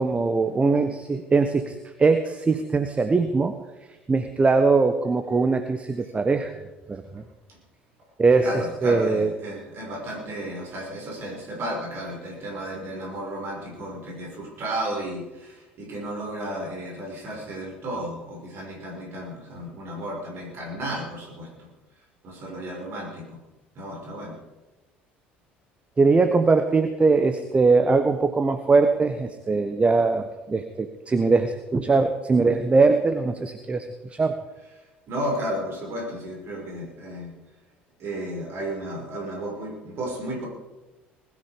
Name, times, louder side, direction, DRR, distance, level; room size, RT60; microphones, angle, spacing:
voice 1, 0.0-3.5 4.1-6.6 6.9-7.2 8.2-9.3 26.0-34.4, right 4 dB, 20° right, 9 dB, 1.2 m, -21 dB
voice 2, 8.4-21.5 22.2-23.4 23.8-24.3 35.1-37.3 38.0-40.5, right 1 dB, 45° right, -2 dB, 6.1 m, -33 dB
20.5 x 13.5 x 5.2 m, 1.1 s
figure-of-eight pair, 55°, 6 cm